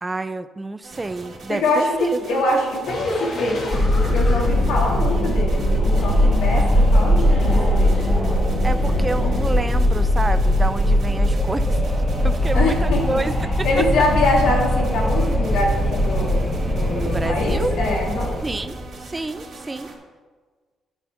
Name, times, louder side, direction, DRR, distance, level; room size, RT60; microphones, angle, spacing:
voice 1, 0.0-2.4 8.6-11.8 12.2-13.8 16.9-17.8 18.4-18.8 19.1-19.9, right 2 dB, 20° right, 12 dB, 0.4 m, -28 dB
sound 1, 0.8-20.0, right 3 dB, 55° right, 1.9 m, -41 dB
voice 2, 1.5-8.1 12.5-13.2 13.6-18.3, left 2 dB, 85° left, -2 dB, 2.1 m, -24 dB
sound 2, 2.9-9.4, left 1 dB, 60° left, 2.1 m, -31 dB
Wind, 3.7-19.0, left 1 dB, 10° left, 2.0 m, -20 dB
11.0 x 4.3 x 5.8 m, 1.5 s
cardioid pair, 90°, 0 cm